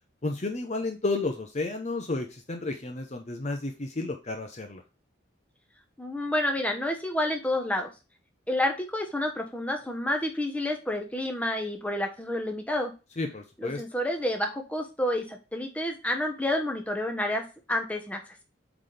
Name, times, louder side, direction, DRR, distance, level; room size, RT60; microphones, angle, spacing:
voice 1, 0.2-4.8 13.2-13.8, left 2 dB, 35° left, 5 dB, 0.7 m, -32 dB
voice 2, 6.0-7.9 8.5-12.9 13.6-18.4, left 1 dB, 5° left, 3 dB, 1.0 m, -29 dB
8.1 x 4.0 x 3.3 m, 0.30 s
head